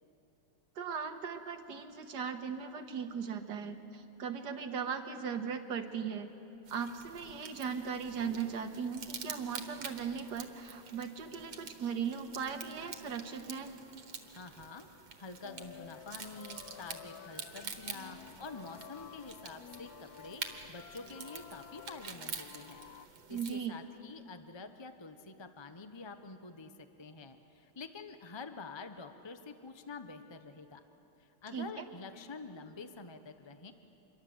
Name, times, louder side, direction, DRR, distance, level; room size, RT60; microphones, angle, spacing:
voice 1, 0.8-6.3 6.7-13.7 23.3-23.8 31.5-31.7, right 6 dB, 60° right, 6 dB, 1.9 m, -38 dB
sound 1, 6.7-23.6, right 6 dB, 80° right, 2.2 m, -47 dB
voice 2, 14.3-14.9 15.2-22.8 23.3-30.8 31.2-33.7, left 4 dB, 40° left, 8 dB, 0.4 m, -47 dB
sound 2, 15.4-23.1, left 9 dB, 65° left, 1.1 m, -52 dB
27.0 x 22.5 x 7.9 m, 2.9 s
omnidirectional pair, 2.1 m